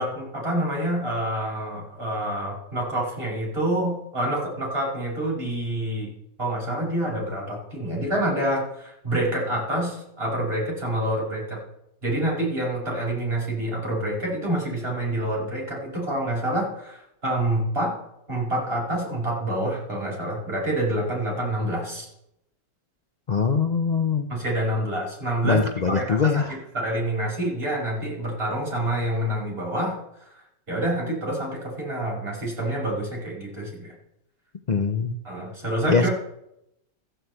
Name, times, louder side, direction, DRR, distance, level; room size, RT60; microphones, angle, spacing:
voice 1, 0.0-6.1 6.4-11.6 12.0-17.9 18.3-22.1 24.3-25.6 25.9-30.0 30.7-33.9 35.2-36.1, right 1 dB, 35° right, -3 dB, 5.9 m, -27 dB
voice 2, 23.3-24.3 25.4-26.5 34.7-35.1 35.9-36.1, left 5 dB, 75° left, 6 dB, 0.4 m, -22 dB
14.0 x 6.5 x 7.9 m, 0.79 s
omnidirectional pair, 1.9 m